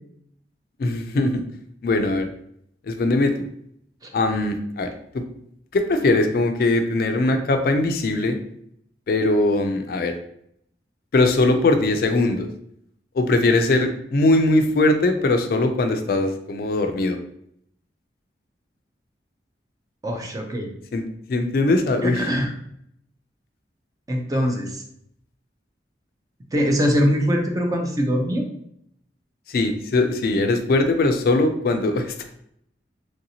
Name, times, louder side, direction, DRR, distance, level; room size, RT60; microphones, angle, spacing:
voice 1, 0.8-1.4 1.8-2.3 2.9-3.5 4.1-5.2 5.7-8.4 9.1-10.1 11.1-12.5 13.1-17.2 20.9-21.0 21.3-22.3 29.5-32.3, left 2 dB, 55° left, 7 dB, 0.3 m, -20 dB
voice 2, 20.0-20.7 22.0-22.5 24.1-24.8 26.5-28.4, equal, 20° right, 2 dB, 0.4 m, -22 dB
3.2 x 2.7 x 2.7 m, 0.72 s
head